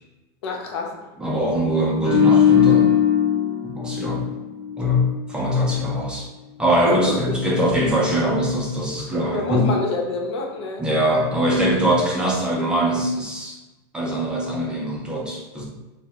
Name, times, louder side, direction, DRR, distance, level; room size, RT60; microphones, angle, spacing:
voice 1, 0.4-1.0 6.8-7.1 9.3-10.8, left 3 dB, 90° left, 0 dB, 0.7 m, -27 dB
voice 2, 1.2-2.9 3.8-4.3 4.8-6.3 6.6-9.7 10.8-13.6 13.9-15.6, equal, 5° right, -3 dB, 0.3 m, -22 dB
sound 1, 2.0-5.3 5.6-5.8, left 8 dB, 50° left, 1.0 m, -19 dB
3.2 x 2.1 x 2.8 m, 1.1 s
supercardioid pair, 165°, 14 cm